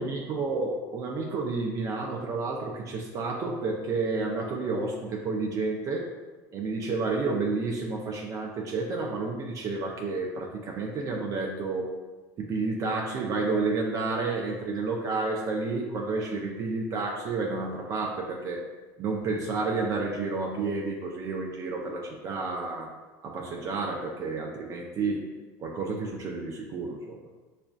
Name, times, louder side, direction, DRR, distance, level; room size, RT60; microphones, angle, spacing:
voice 1, 0.0-6.1 6.5-11.9 12.4-18.6 19.0-22.9 23.2-25.3 25.6-27.2, right 3 dB, 35° right, -1 dB, 0.4 m, -30 dB
5.9 x 2.4 x 2.3 m, 1.3 s
supercardioid pair, 130°, 9 cm